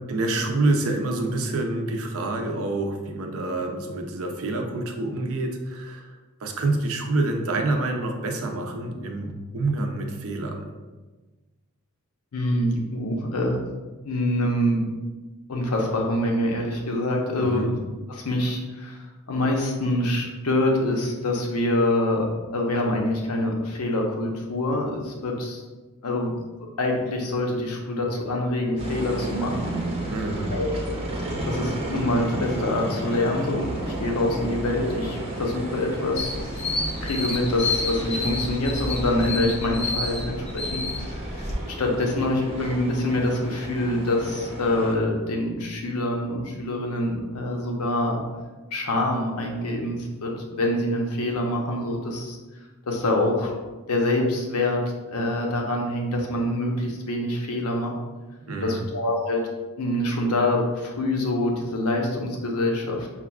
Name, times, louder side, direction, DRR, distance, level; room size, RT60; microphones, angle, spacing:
voice 1, 0.1-6.2 6.4-10.7 17.4-17.7 30.1-30.5 58.5-58.9, right 2 dB, 65° right, 3 dB, 0.5 m, -27 dB
voice 2, 12.3-13.6 14.0-14.8 15.5-17.7 18.1-19.0 19.3-22.3 22.5-25.6 26.0-26.3 26.8-29.8 30.5-31.0 31.4-36.3 36.6-36.7 37.0-40.8 41.1-48.2 48.7-52.4 52.9-53.5 53.9-54.8 55.1-57.9 58.6-59.4 59.8-63.1, left 1 dB, 85° left, 0 dB, 0.7 m, -25 dB
sound 1, 28.8-44.9, right 1 dB, 25° right, 0.7 m, -33 dB
sound 2, 36.2-41.5, left 2 dB, 30° left, 0.5 m, -30 dB
5.5 x 2.4 x 2.3 m, 1.2 s
head